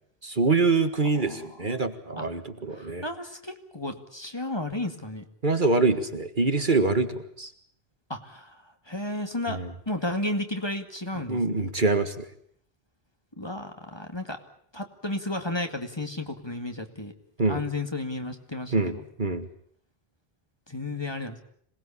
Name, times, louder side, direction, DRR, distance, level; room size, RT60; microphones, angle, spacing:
voice 1, 0.2-3.0 5.4-7.5 9.5-9.7 11.3-12.3 17.4-17.6 18.7-19.5, right 3 dB, 50° right, 8 dB, 2.0 m, -25 dB
voice 2, 1.1-1.8 2.2-2.3 2.7-5.2 8.1-9.6 9.9-11.7 13.4-14.4 14.7-17.1 17.5-19.0 20.7-21.4, left 2 dB, 25° left, 5 dB, 2.3 m, -33 dB
26.5 x 19.5 x 8.7 m, 0.65 s
omnidirectional pair, 1.0 m